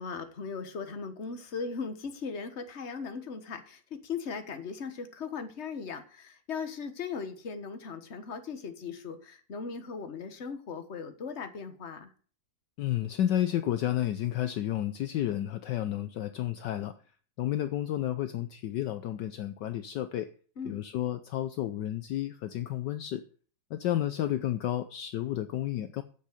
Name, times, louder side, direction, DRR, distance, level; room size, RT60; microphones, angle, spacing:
voice 1, 0.0-12.1 20.6-20.8, left 5 dB, 40° left, 8 dB, 1.5 m, -38 dB
voice 2, 12.8-16.9 17.4-20.3 20.6-23.2 23.7-26.0, left 12 dB, 70° left, 10 dB, 1.3 m, -31 dB
9.5 x 7.8 x 6.7 m, 0.42 s
omnidirectional pair, 2.1 m